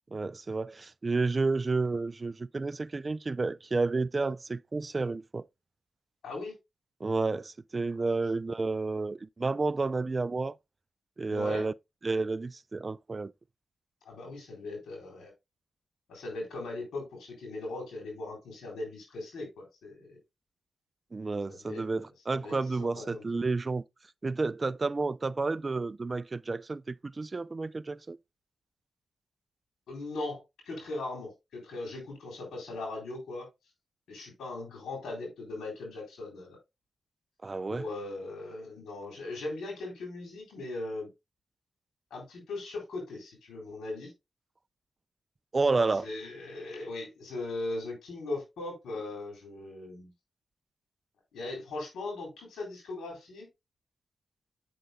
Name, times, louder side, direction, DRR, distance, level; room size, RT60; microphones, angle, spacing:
voice 1, 0.1-5.5 7.0-10.6 11.2-11.7 12.0-13.3 21.1-23.8 24.2-28.2 37.4-37.8 45.5-46.1, right 3 dB, 40° right, 0.3 m, -31 dB
voice 2, 6.2-6.5 11.3-11.7 14.0-15.3 16.1-20.2 21.5-23.4 29.9-33.5 34.1-36.6 37.7-41.1 42.1-44.1 46.0-50.1 51.3-53.5, left 2 dB, 90° left, 4.1 m, -39 dB
7.8 x 6.3 x 2.2 m
cardioid pair, 50°, 0 cm